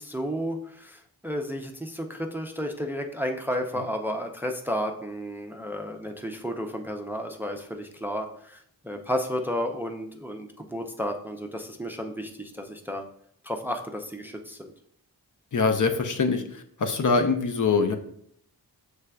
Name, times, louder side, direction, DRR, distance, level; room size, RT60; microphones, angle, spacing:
voice 1, 0.0-13.0 13.4-14.7, equal, 5° right, 4 dB, 0.5 m, -32 dB
voice 2, 15.5-17.9, left 4 dB, 50° left, 5 dB, 0.6 m, -24 dB
6.3 x 3.3 x 2.3 m, 0.67 s
cardioid pair, 45°, 40 cm